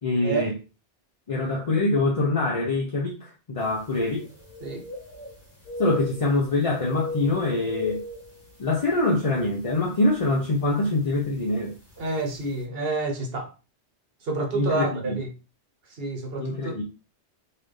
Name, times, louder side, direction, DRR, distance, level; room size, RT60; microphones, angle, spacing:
voice 1, 0.0-0.5 1.3-4.3 5.8-8.0 8.6-11.7 14.5-15.2 16.4-16.8, left 2 dB, 40° left, 0.6 m, -24 dB
sound 1, 3.7-3.8 4.1-5.4 5.6-6.5 6.8-9.0 9.4-9.5 10.2-10.5 11.5-11.6 12.0-12.1, left 1 dB, 10° left, 1.5 m, -37 dB
voice 2, 12.0-13.5 14.2-15.3 15.9-16.8, right 3 dB, 60° right, 1.1 m, -29 dB
4.1 x 2.5 x 3.3 m
omnidirectional pair, 1.2 m